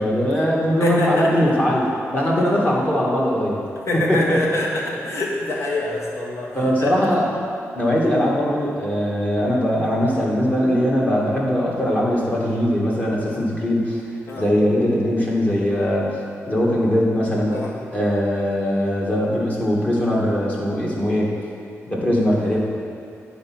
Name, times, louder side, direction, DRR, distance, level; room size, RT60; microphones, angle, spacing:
voice 1, 0.0-1.8 2.1-3.6 4.1-4.4 6.5-7.3 7.7-14.0 14.4-16.1 16.5-17.5 17.9-21.3 21.9-22.6, equal, 30° left, -4 dB, 1.8 m, -20 dB
voice 2, 0.8-1.3 2.3-2.4 3.9-6.9 14.3-14.5 17.5-17.7, left 2 dB, 70° left, -3 dB, 1.7 m, -25 dB
9.4 x 4.3 x 6.1 m, 2.5 s
cardioid pair, 95°, 5 cm